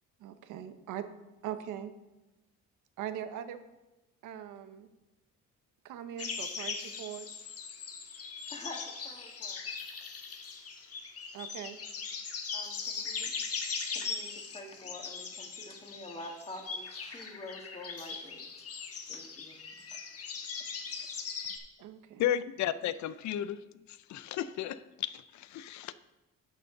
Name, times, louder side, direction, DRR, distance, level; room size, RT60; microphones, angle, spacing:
voice 1, 0.2-1.1 1.4-1.9 3.0-3.6 4.2-4.9 5.8-7.3 11.3-11.8 21.8-22.3, right 10 dB, 90° right, 0.8 m, -41 dB
sound 1, 6.2-21.6, left 5 dB, 50° left, 1.3 m, -40 dB
voice 2, 8.5-9.6 12.5-13.3 13.9-18.7 19.1-19.6 19.9-20.0, left 1 dB, 20° left, 1.8 m, -47 dB
voice 3, 22.2-23.6 24.1-25.9, left 11 dB, 70° left, 0.5 m, -33 dB
10.5 x 7.0 x 3.8 m
cardioid pair, 90°, 30 cm